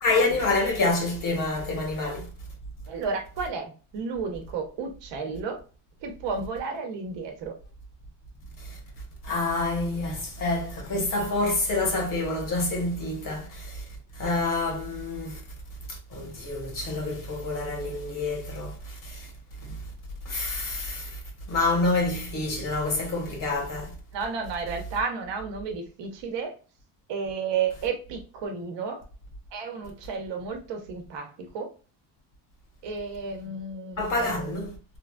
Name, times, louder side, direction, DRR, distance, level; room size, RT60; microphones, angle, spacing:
voice 1, 0.0-2.3 9.3-13.8 14.2-15.3 16.1-18.7 19.0-19.1 20.3-21.1 21.5-23.9 34.0-34.7, left 2 dB, 40° left, 1.3 m, -27 dB
voice 2, 2.9-5.6 6.0-7.5 24.1-26.5 27.1-29.0 29.5-31.7 32.8-34.7, right 5 dB, 60° right, 1.0 m, -32 dB
3.2 x 2.4 x 2.2 m
cardioid pair, 130°, 48 cm